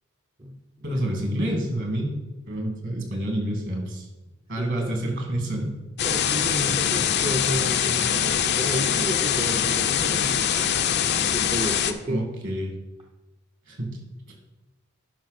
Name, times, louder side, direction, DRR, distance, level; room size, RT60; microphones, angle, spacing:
voice 1, 0.8-2.1 2.5-4.1 4.5-5.7 12.1-12.7 13.7-14.0, right 1 dB, 60° right, 1 dB, 2.5 m, -28 dB
voice 2, 4.6-4.9 6.0-10.7 11.3-12.2, right 1 dB, 25° right, 1 dB, 0.7 m, -32 dB
sound 1, 6.0-11.9, left 8 dB, 50° left, 0.6 m, -23 dB
10.0 x 5.9 x 4.3 m, 1.1 s
head